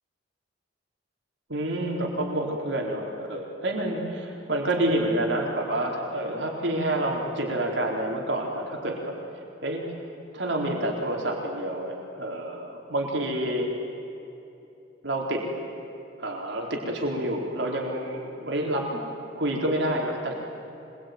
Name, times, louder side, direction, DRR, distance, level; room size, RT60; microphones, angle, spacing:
voice 1, 1.5-10.1 10.3-13.7 15.0-15.4 16.2-19.0 19.3-20.3, right 1 dB, 70° right, 0 dB, 4.4 m, -28 dB
25.5 x 22.5 x 9.6 m, 2.9 s
head